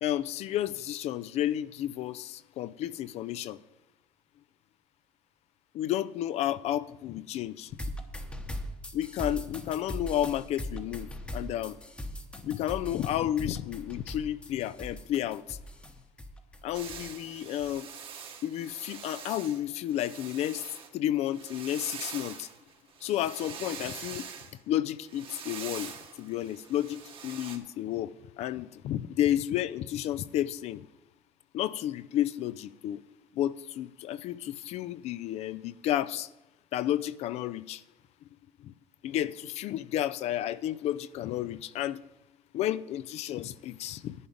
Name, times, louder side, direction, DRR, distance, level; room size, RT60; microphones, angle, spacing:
voice 1, 0.0-3.6 5.7-7.7 8.9-11.8 12.4-15.6 16.6-17.9 18.4-20.6 20.9-22.5 23.0-24.3 24.7-25.9 26.2-30.8 31.5-33.0 33.3-36.3 36.7-37.8 38.6-38.7 39.0-42.0 42.5-44.1, left 12 dB, 60° left, 0.4 m, -31 dB
sound 1, 7.7-17.3 17.6-17.7, left 1 dB, 10° left, 0.9 m, -40 dB
sound 2, 16.7-20.9 21.2-24.5 25.0-27.6, right 7 dB, 45° right, 1.2 m, -44 dB
11.0 x 5.0 x 8.4 m
cardioid pair, 125°, 12 cm